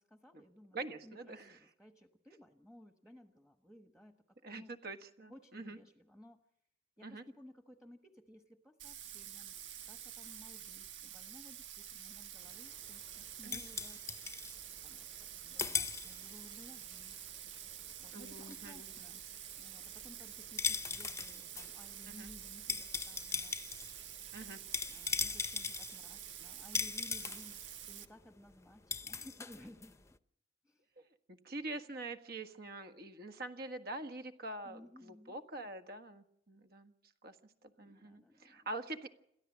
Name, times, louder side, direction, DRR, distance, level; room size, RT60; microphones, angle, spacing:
voice 1, 0.0-4.7 5.3-6.4 7.0-9.6 9.8-14.1 14.8-17.2 17.5-19.2 19.6-24.0 24.9-30.0 30.6-30.9 34.6-35.4 37.8-38.8, left 1 dB, 5° right, 6 dB, 1.2 m, -58 dB
voice 2, 0.7-1.6 4.4-5.8 7.0-7.2 13.4-13.6 18.1-19.1 22.1-22.3 24.3-24.6 31.3-36.9 37.2-39.1, right 2 dB, 60° right, 7 dB, 1.6 m, -45 dB
Bathtub (filling or washing), 8.8-28.1, right 10 dB, 85° right, 1.3 m, -48 dB
sound 1, 12.4-15.3 15.6-16.6 16.8-30.2, left 5 dB, 15° left, 0.7 m, -40 dB
28.5 x 13.5 x 7.5 m, 0.77 s
head